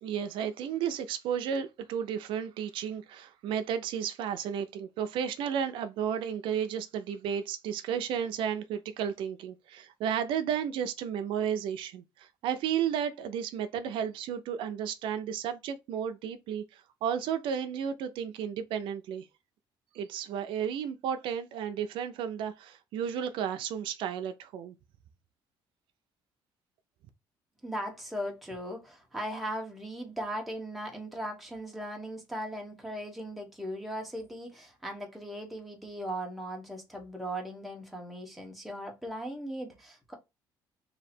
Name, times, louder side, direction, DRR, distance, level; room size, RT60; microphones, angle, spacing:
voice 1, 0.0-19.3 19.9-24.7, right 8 dB, 75° right, 0.5 m, -33 dB
voice 2, 27.6-40.1, equal, ahead, 1.0 m, -38 dB
3.2 x 2.7 x 4.2 m
cardioid pair, 160°, 9 cm